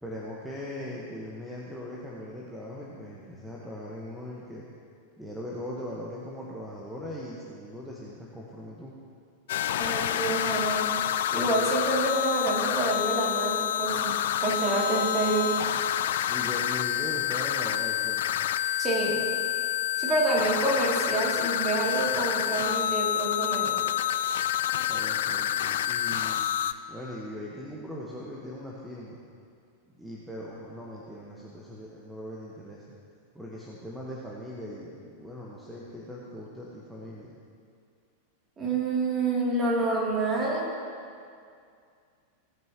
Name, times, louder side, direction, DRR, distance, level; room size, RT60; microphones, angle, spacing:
voice 1, 0.0-4.7 5.2-8.9 16.3-18.5 20.4-20.5 24.9-26.5 26.9-29.2 30.0-32.8 33.3-37.3, left 1 dB, ahead, -5 dB, 1.3 m, -40 dB
sound 1, 9.5-26.7, left 11 dB, 60° left, 0.4 m, -28 dB
voice 2, 9.8-10.9 11.3-14.1 14.4-15.6 18.8-19.2 20.0-23.8 38.6-40.7, right 2 dB, 20° right, -4 dB, 2.9 m, -27 dB
17.5 x 9.0 x 3.0 m, 2.3 s
figure-of-eight pair, 90°, 0 cm